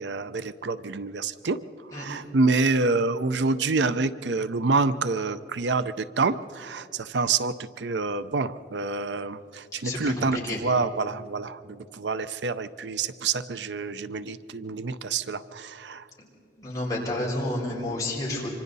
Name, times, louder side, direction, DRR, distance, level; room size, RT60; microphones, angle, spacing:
voice 1, 0.0-1.6 1.9-16.0, right 3 dB, 80° right, 13 dB, 0.6 m, -27 dB
voice 2, 9.8-10.6 16.6-18.5, left 1 dB, 20° left, -4 dB, 5.1 m, -30 dB
26.5 x 25.5 x 4.1 m, 2.6 s
head